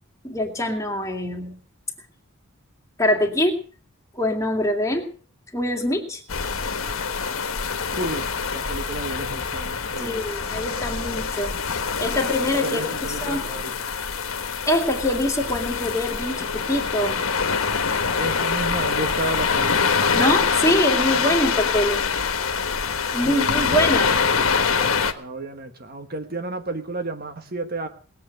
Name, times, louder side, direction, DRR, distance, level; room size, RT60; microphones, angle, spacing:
voice 1, 0.2-1.6 3.0-3.6 4.2-5.1 5.5-6.2 10.0-12.8 13.2-13.5 14.7-17.2 20.1-22.1 23.1-24.1, left 1 dB, 15° left, 2 dB, 2.3 m, -24 dB
sound 1, 6.3-25.1, left 5 dB, 85° left, 1.4 m, -25 dB
voice 2, 7.9-10.3 12.6-13.7 18.2-19.9 23.3-23.8 24.6-27.9, right 2 dB, 45° right, 7 dB, 1.3 m, -32 dB
20.0 x 8.4 x 6.6 m, 0.42 s
head